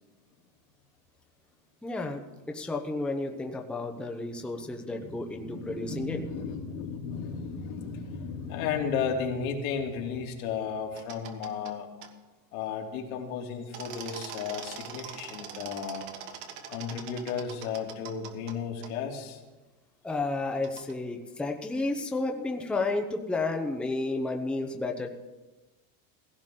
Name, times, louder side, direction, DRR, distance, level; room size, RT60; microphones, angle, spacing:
voice 1, 1.8-6.2 20.0-25.1, left 2 dB, ahead, 3 dB, 0.8 m, -32 dB
voice 2, 4.9-11.9 12.5-16.1 16.7-19.4, left 6 dB, 85° left, 0 dB, 3.0 m, -34 dB
sound 1, 11.0-11.7 12.0-12.1 13.7-18.5 18.8-18.9 20.6-20.9, right 8 dB, 60° right, 1.8 m, -42 dB
17.5 x 16.5 x 3.8 m, 1.1 s
cardioid pair, 165°, 42 cm